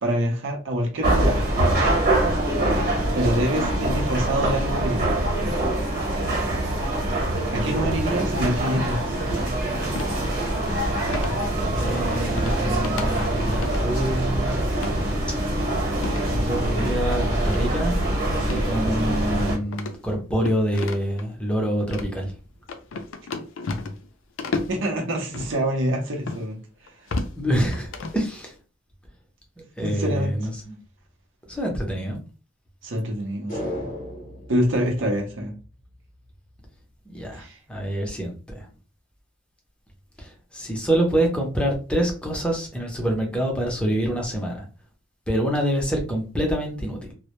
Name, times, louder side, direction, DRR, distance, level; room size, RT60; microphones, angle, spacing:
voice 1, 0.0-1.5 3.1-5.2 7.5-9.3 24.7-26.6 29.8-30.3 32.8-33.9 34.5-35.5 37.3-37.6, equal, 65° right, 0.6 m, -26 dB
sound 1, 1.0-19.6, right 1 dB, 50° right, 1.0 m, -24 dB
sound 2, 9.9-10.1 11.1-11.4 12.4-12.6 12.8-13.1 13.4-13.8 14.7-14.9 16.0-16.3 17.0-17.2 18.4-18.7 19.0-19.1 19.7-21.2 21.8-22.1 22.7-24.1 24.4-24.8 25.3-25.5 26.3-26.4 26.9-27.4 27.7-28.2, left 3 dB, 75° left, 0.4 m, -32 dB
voice 2, 11.6-14.7 16.2-18.0 18.5-22.3 27.3-28.5 29.8-30.8 31.5-32.2 37.1-38.7 40.2-44.7 45.3-47.1, right 1 dB, 5° left, 0.6 m, -26 dB
sound 3, 33.5-36.0 36.3-36.4, left 1 dB, 40° left, 0.7 m, -35 dB
2.1 x 2.0 x 2.9 m
head